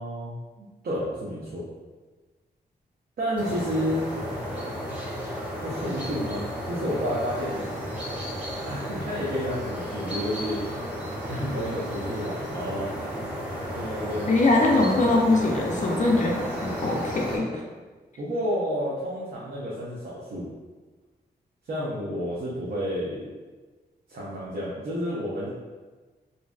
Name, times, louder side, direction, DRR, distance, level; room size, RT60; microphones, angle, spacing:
voice 1, 0.0-1.6 3.2-4.0 5.6-7.7 8.6-10.6 11.0-12.9 13.7-14.3 18.2-20.5 21.7-23.3 24.1-25.5, equal, 65° right, -7 dB, 0.5 m, -30 dB
sound 1, 3.4-17.4, equal, 10° right, 0.7 m, -33 dB
voice 2, 14.3-17.6, left 2 dB, 45° left, 0 dB, 0.4 m, -22 dB
2.5 x 2.1 x 2.3 m, 1.3 s
cardioid pair, 80°, 17 cm